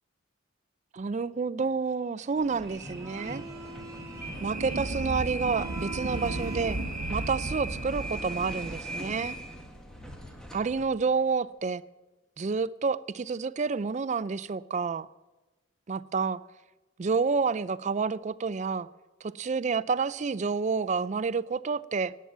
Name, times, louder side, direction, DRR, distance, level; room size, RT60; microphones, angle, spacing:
voice 1, 0.9-3.4 4.4-6.8 7.1-9.4 10.5-11.8 12.4-15.1 15.9-16.4 17.0-18.9 19.2-22.1, right 5 dB, 35° right, 0.3 m, -29 dB
sound 1, 2.4-10.9, right 1 dB, 5° left, 1.4 m, -40 dB
sound 2, 2.6-7.6, right 2 dB, 15° right, 2.9 m, -42 dB
sound 3, 4.1-8.9, right 1 dB, 70° right, 0.9 m, -36 dB
14.5 x 9.4 x 7.3 m
head